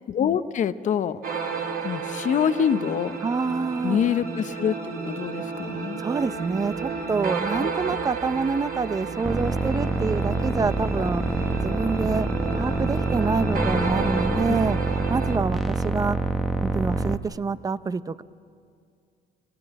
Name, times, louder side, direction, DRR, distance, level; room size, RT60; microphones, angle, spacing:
voice 1, 0.1-1.2 1.8-3.2 3.8-6.0 7.6-8.0 14.5-14.6, left 8 dB, 45° left, 12 dB, 0.7 m, -25 dB
sound 1, 1.2-15.4, right 5 dB, 65° right, 3.2 m, -32 dB
voice 2, 3.2-4.0 6.0-11.2 11.6-14.8 15.1-16.2 16.6-18.2, right 4 dB, 20° right, 15 dB, 0.6 m, -27 dB
sound 2, 6.1-12.3, right 9 dB, 85° right, 1.3 m, -44 dB
sound 3, 9.2-17.2, right 1 dB, ahead, 0.9 m, -26 dB
26.0 x 18.0 x 9.0 m, 2.3 s
cardioid pair, 110°, 17 cm